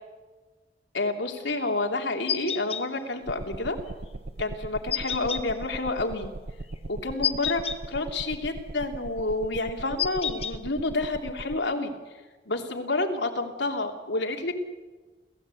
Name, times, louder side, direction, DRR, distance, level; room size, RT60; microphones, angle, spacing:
voice 1, 0.9-3.8 4.4-6.3 6.9-7.6 7.9-11.9 12.5-14.6, left 2 dB, 80° left, 3 dB, 3.0 m, -29 dB
sound 1, 2.3-2.8 4.9-5.4 7.2-7.8 10.0-10.5, left 8 dB, 35° left, 1.1 m, -28 dB
sound 2, 3.3-11.6, right 2 dB, 60° right, 0.7 m, -40 dB
29.5 x 15.5 x 8.4 m, 1.3 s
head